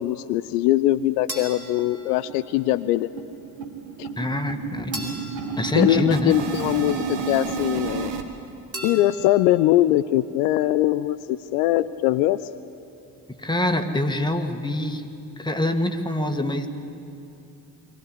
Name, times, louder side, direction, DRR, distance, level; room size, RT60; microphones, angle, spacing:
voice 1, 0.0-3.1 4.0-4.1 5.8-8.1 8.8-12.4, left 15 dB, 70° left, 15 dB, 0.6 m, -21 dB
sound 1, 1.0-1.1 1.4-1.5 1.8-2.0 2.3-8.2, right 5 dB, 60° right, 1.7 m, -31 dB
sound 2, 1.3-2.8 4.9-6.8 8.7-9.9, right 1 dB, 30° right, 4.4 m, -39 dB
voice 2, 4.2-5.2 5.6-6.4 13.4-15.0 15.4-16.7, left 1 dB, 10° left, 5 dB, 1.8 m, -25 dB
23.0 x 15.5 x 8.5 m, 2.6 s
figure-of-eight pair, 40°, 48 cm